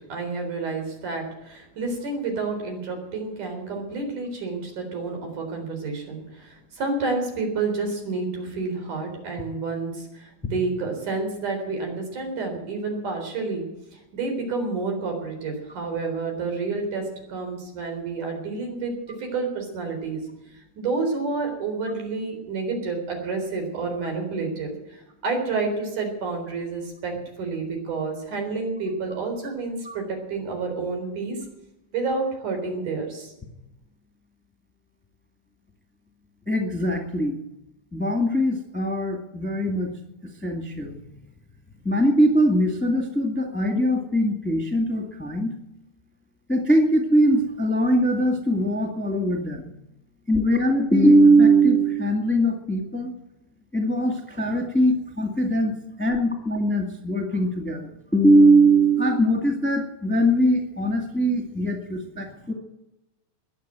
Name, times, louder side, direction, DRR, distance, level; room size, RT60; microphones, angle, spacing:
voice 1, 0.1-13.7 14.1-17.0 17.3-18.9 19.2-20.2 20.8-30.0 30.3-31.4 31.9-33.3, right 3 dB, 90° right, 3 dB, 5.5 m, -29 dB
voice 2, 36.5-37.4 37.9-39.9 40.4-41.0 41.8-45.5 46.5-49.7 50.3-53.1 53.7-62.5, right 1 dB, 5° left, 3 dB, 1.4 m, -21 dB
21.0 x 7.5 x 9.0 m, 0.91 s
omnidirectional pair, 3.4 m